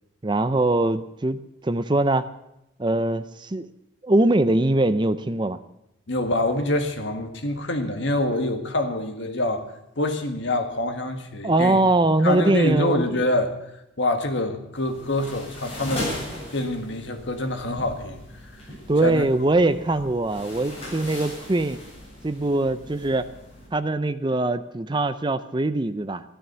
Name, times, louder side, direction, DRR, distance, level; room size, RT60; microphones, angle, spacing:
voice 1, 0.2-2.3 2.8-3.7 4.0-5.6 11.4-13.1 18.9-21.8 22.2-23.3 23.7-26.2, right 2 dB, 25° right, 13 dB, 0.5 m, -22 dB
voice 2, 6.1-9.6 10.0-11.8 12.2-13.5 14.0-16.2 16.5-18.2 19.0-19.3, left 1 dB, 65° left, 5 dB, 1.8 m, -25 dB
sound 1, 14.7-23.7, left 1 dB, 30° left, 7.5 m, -38 dB
14.0 x 12.5 x 6.8 m, 0.84 s
head